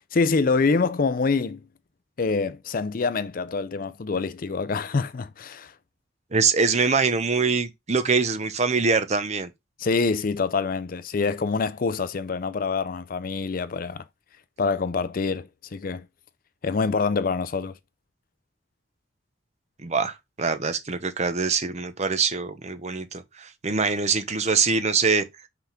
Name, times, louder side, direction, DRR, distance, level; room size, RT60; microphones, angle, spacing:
voice 1, 0.1-1.6 2.2-5.7 9.8-14.0 14.6-16.1 16.6-17.7, left 4 dB, 45° left, 0.4 m, -25 dB
voice 2, 6.3-9.5 19.8-25.2, right 4 dB, 35° right, 0.8 m, -24 dB
5.8 x 3.6 x 5.7 m
head